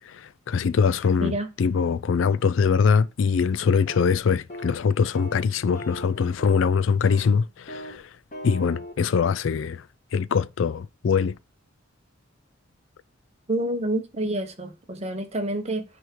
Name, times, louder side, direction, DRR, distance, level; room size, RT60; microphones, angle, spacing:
voice 1, 0.1-8.1 8.4-9.8 10.1-11.3, left 6 dB, 70° left, 0.4 m, -23 dB
sound 1, 3.9-4.2 4.5-4.8 5.1-5.4 5.7-6.7 7.0-7.4 7.7-8.0 8.3-8.9, left 1 dB, 40° left, 1.6 m, -39 dB
voice 2, 13.5-15.8, right 1 dB, 30° right, 1.0 m, -28 dB
9.5 x 3.5 x 4.6 m
head